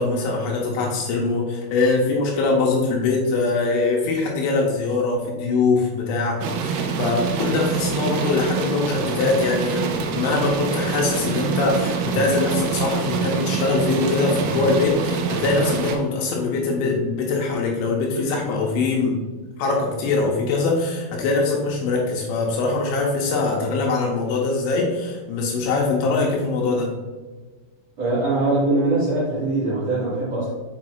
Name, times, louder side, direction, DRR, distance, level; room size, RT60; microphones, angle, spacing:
voice 1, 0.0-19.2 19.6-26.9, left 3 dB, 80° left, -1 dB, 3.1 m, -22 dB
sound 1, 6.4-16.0, right 5 dB, 85° right, 3.4 m, -25 dB
voice 2, 28.0-30.5, right 2 dB, 50° right, -9 dB, 2.0 m, -22 dB
7.4 x 6.0 x 2.5 m, 1.3 s
omnidirectional pair, 5.9 m